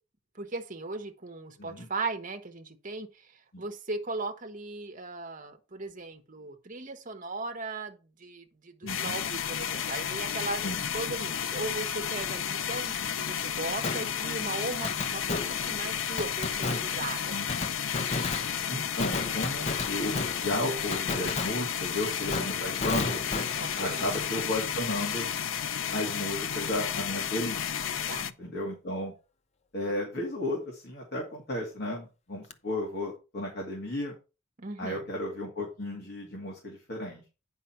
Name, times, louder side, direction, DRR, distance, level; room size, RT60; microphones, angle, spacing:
voice 1, 0.3-3.3 3.6-10.6 10.9-17.7 23.6-24.0 28.1-28.3 34.6-35.1, right 3 dB, 40° right, 1.2 m, -37 dB
voice 2, 8.8-9.2 10.6-10.8 17.3-17.8 18.7-23.2 23.8-25.3 25.9-27.9 28.2-29.1 29.7-34.1 34.8-37.2, left 1 dB, 55° left, 2.4 m, -34 dB
sound 1, 8.9-28.3, left 8 dB, 75° left, 0.6 m, -32 dB
Fireworks, 13.8-25.5 25.8-25.9 32.5-32.6, left 3 dB, 35° left, 0.7 m, -36 dB
9.2 x 5.6 x 4.4 m
head